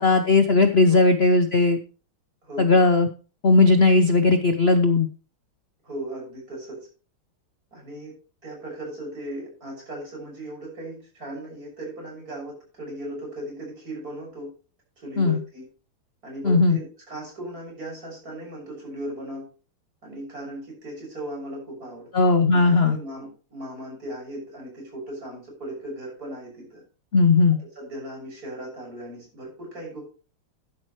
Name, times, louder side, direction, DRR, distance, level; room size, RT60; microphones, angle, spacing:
voice 1, 0.0-1.8 2.6-3.1 3.4-5.1 15.2-15.4 16.4-16.8 22.1-23.0 27.1-27.6, left 3 dB, 80° left, 8 dB, 0.5 m, -17 dB
voice 2, 2.4-2.8 5.8-6.9 7.7-8.1 8.4-14.5 15.0-15.7 16.2-19.5 20.0-26.8 27.8-30.0, right 1 dB, 40° right, -1 dB, 7.2 m, -37 dB
12.5 x 11.0 x 3.2 m, 0.36 s
omnidirectional pair, 2.4 m